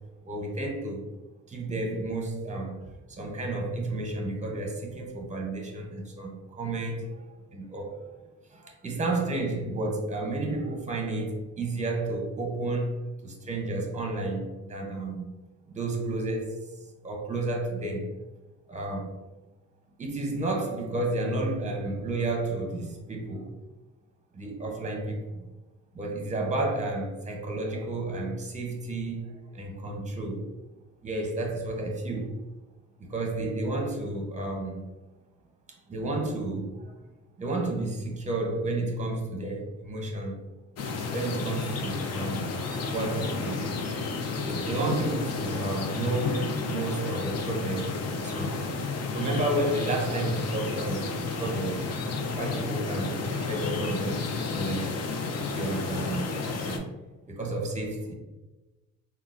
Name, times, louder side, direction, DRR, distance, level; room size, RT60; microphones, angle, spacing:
voice 1, 0.2-1.1 1.5-2.8 3.1-7.2 7.5-8.0 8.5-12.9 13.2-15.3 15.7-16.6 17.0-18.1 18.7-19.1 20.0-23.5 24.3-25.4 25.9-30.5 31.0-32.4 33.0-34.8 35.9-36.8 37.4-40.4 41.1-42.6 42.9-43.7 44.4-48.6 49.1-51.8 52.3-54.9 55.5-56.9 57.3-58.1, right 2 dB, 25° right, 0.7 m, -31 dB
sound 1, 40.8-56.8, left 4 dB, 55° left, 0.5 m, -32 dB
3.6 x 2.3 x 2.5 m
cardioid pair, 90°, 30 cm